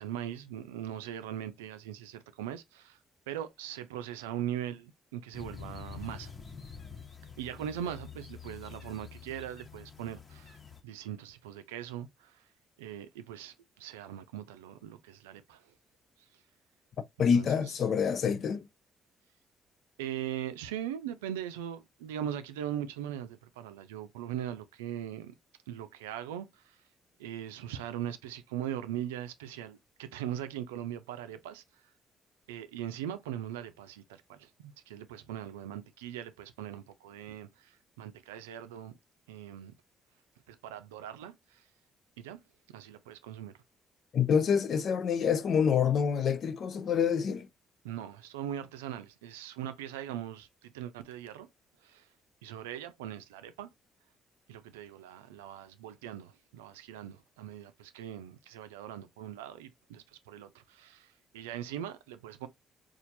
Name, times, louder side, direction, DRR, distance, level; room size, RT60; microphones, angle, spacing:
voice 1, 0.0-3.0 3.3-6.3 7.4-10.6 10.8-12.5 12.8-15.7 16.2-16.4 17.3-17.8 20.0-25.3 25.7-26.8 27.2-31.8 32.5-38.9 39.3-39.7 40.5-41.7 42.2-42.4 42.7-43.5 47.8-51.5 51.8-52.1 52.4-53.7 54.5-62.5, right 10 dB, 90° right, 0.4 m, -40 dB
sound 1, 5.3-10.8, left 6 dB, 35° left, 1.2 m, -47 dB
voice 2, 17.2-18.7 44.1-47.5, left 7 dB, 60° left, 0.6 m, -27 dB
4.4 x 2.4 x 2.6 m
hypercardioid pair, 50°, 0 cm